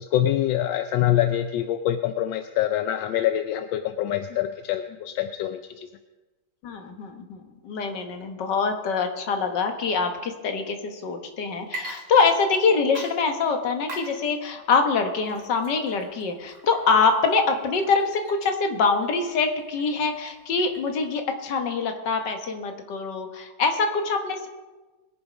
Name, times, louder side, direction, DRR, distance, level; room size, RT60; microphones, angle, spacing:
voice 1, 0.0-5.9, left 12 dB, 85° left, 8 dB, 1.4 m, -25 dB
voice 2, 6.6-24.5, left 4 dB, 65° left, 5 dB, 1.9 m, -24 dB
Water / Liquid, 11.6-12.6 12.9-21.2, right 2 dB, 35° right, 2.0 m, -43 dB
21.5 x 7.1 x 5.1 m, 1.2 s
omnidirectional pair, 2.0 m